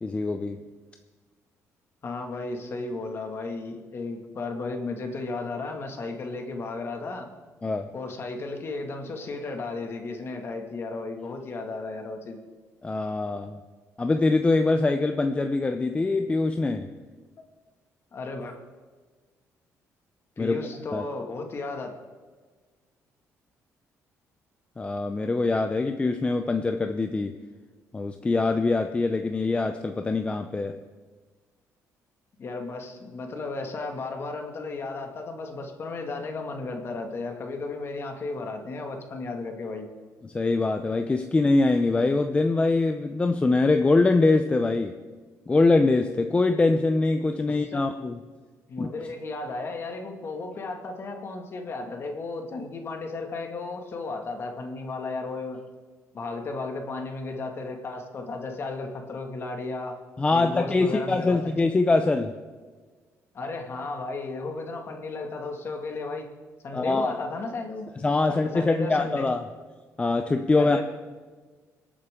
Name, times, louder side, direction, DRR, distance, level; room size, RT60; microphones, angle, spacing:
voice 1, 0.0-0.6 7.6-7.9 12.8-13.6 14.0-17.0 20.4-20.6 20.9-21.1 24.8-27.4 27.9-30.8 40.2-45.0 45.5-48.2 48.8-48.9 60.2-62.4 66.7-67.1 68.0-69.4 70.0-70.8, left 3 dB, 20° left, 6 dB, 0.6 m, -23 dB
voice 2, 2.0-7.3 7.9-12.4 18.1-18.6 20.4-21.9 32.4-39.9 47.5-47.9 48.7-55.6 56.1-60.0 60.3-61.6 63.3-66.3 66.6-67.9 68.3-69.3 70.6-70.8, left 3 dB, 45° left, 3 dB, 2.1 m, -34 dB
25.5 x 8.7 x 3.8 m, 1.4 s
cardioid pair, 115°, 6 cm